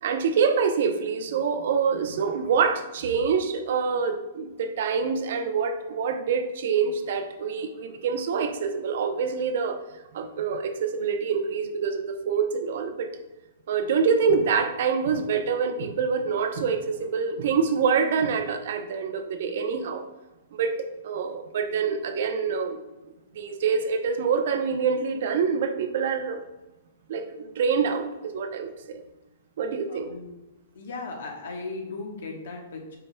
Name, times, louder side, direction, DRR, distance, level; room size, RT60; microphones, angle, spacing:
voice 1, 0.0-9.8 10.1-13.1 13.7-20.0 20.5-20.8 21.0-22.8 23.3-26.4 27.1-29.0 29.6-30.1, right 6 dB, 65° right, 7 dB, 0.6 m, -26 dB
voice 2, 29.9-30.3 30.7-33.0, left 3 dB, 70° left, 2 dB, 1.1 m, -37 dB
5.5 x 4.2 x 2.2 m, 1.0 s
hypercardioid pair, 125°, 0 cm